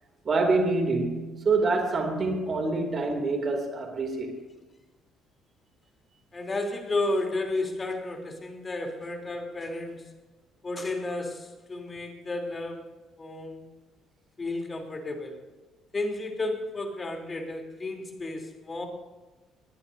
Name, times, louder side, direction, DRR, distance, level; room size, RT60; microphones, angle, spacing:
voice 1, 0.2-4.3, right 3 dB, 40° right, 2.9 m, -26 dB
voice 2, 6.3-10.1 10.6-13.6 14.4-15.4 15.9-18.9, left 2 dB, 30° left, 3.4 m, -32 dB
21.5 x 18.0 x 2.8 m
hypercardioid pair, 50°, 0 cm